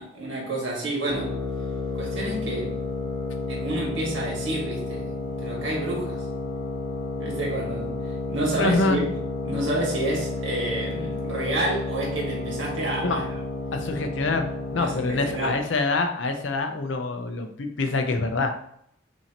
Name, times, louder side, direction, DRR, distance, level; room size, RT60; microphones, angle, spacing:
voice 1, 0.0-1.4 2.0-2.8 3.5-6.3 7.2-7.9 8.3-13.3 14.8-15.6, right 1 dB, 65° right, -2 dB, 1.6 m, -29 dB
sound 1, 1.1-15.7, left 2 dB, 30° left, 0.9 m, -31 dB
voice 2, 8.6-9.1 13.0-13.2 13.7-18.6, left 3 dB, 70° left, 6 dB, 0.5 m, -26 dB
5.8 x 2.7 x 2.9 m, 0.72 s
head